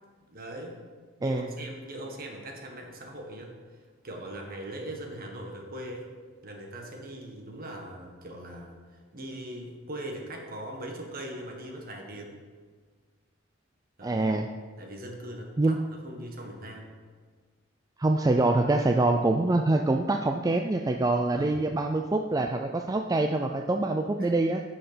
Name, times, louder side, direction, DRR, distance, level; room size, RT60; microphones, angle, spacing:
voice 1, 0.3-0.8 1.2-3.6 4.0-6.1 6.4-8.8 9.1-12.4 14.0-14.3 14.8-15.8 16.0-16.9 21.3-21.7 24.2-24.3, right 1 dB, 50° right, 1 dB, 1.6 m, -40 dB
voice 2, 14.0-14.5 15.6-15.8 18.0-24.6, right 2 dB, 20° right, 4 dB, 0.4 m, -25 dB
10.0 x 6.4 x 5.1 m, 1.5 s
head